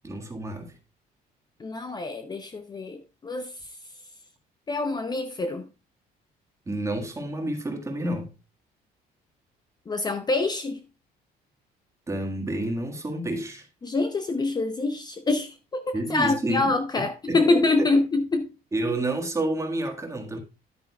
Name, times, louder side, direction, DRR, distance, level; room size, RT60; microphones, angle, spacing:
voice 1, 0.0-0.8 6.7-8.3 12.1-13.7 15.9-16.7 17.0-17.9 18.7-20.4, right 1 dB, 15° right, 1.7 m, -29 dB
voice 2, 1.6-3.5 4.7-5.7 9.9-10.8 13.8-18.5, left 3 dB, 25° left, 0.7 m, -25 dB
10.5 x 8.8 x 2.3 m
cardioid pair, 110°, 17 cm